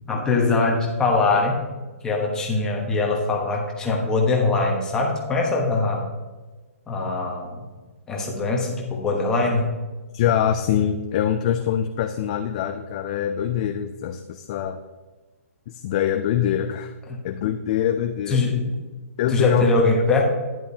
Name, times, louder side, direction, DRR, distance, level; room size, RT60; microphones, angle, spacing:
voice 1, 0.1-1.6 2.0-6.1 6.9-7.7 8.1-9.7 18.3-18.7 19.3-20.2, left 3 dB, 10° left, -1 dB, 1.2 m, -22 dB
voice 2, 10.1-14.8 15.7-16.9 17.2-18.4 19.2-19.8, left 10 dB, 25° left, 7 dB, 0.3 m, -24 dB
11.5 x 10.5 x 2.8 m, 1.3 s
hypercardioid pair, 165°, 8 cm